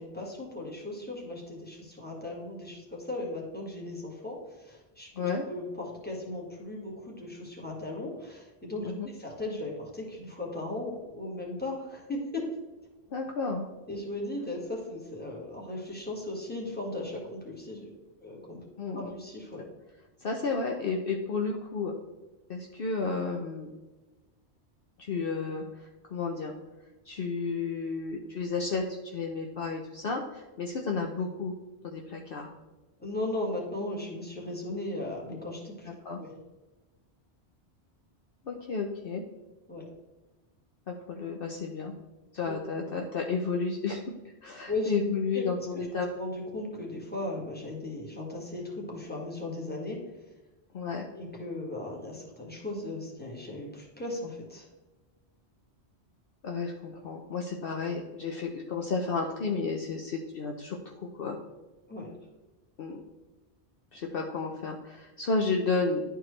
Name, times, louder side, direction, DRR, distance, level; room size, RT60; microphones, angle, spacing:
voice 1, 0.0-12.5 13.9-17.9 18.2-18.6 18.9-19.6 33.0-35.9 36.2-36.4 39.7-39.8 42.5-42.6 44.7-44.9 45.3-45.5 45.8-45.9 46.2-50.0 51.1-54.7 61.9-62.1, left 2 dB, 10° left, -3 dB, 1.7 m, -37 dB
voice 2, 13.1-13.6 18.8-19.1 20.2-21.9 22.5-23.7 25.0-25.6 26.1-26.5 27.1-31.5 31.8-32.5 35.9-36.2 38.5-39.2 40.9-41.9 42.3-44.1 44.4-46.1 50.7-51.1 56.4-61.4 62.8-63.0 63.9-66.0, left 4 dB, 60° left, 1 dB, 0.8 m, -32 dB
11.0 x 4.5 x 3.2 m, 1.2 s
omnidirectional pair, 1.1 m